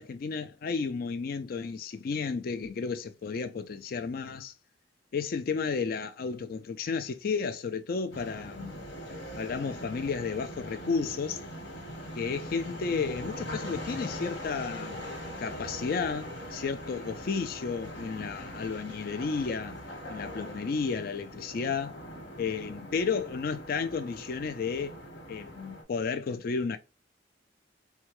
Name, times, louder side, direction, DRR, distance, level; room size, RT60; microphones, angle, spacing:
voice 1, 0.0-4.5 5.1-8.7 9.4-11.4 12.1-15.0 15.4-19.8 20.1-22.0 22.4-25.0 25.3-26.8, left 5 dB, 55° left, 0.4 m, -32 dB
sound 1, 8.1-25.8, equal, 75° left, 1.3 m, -41 dB
4.5 x 2.2 x 3.0 m
head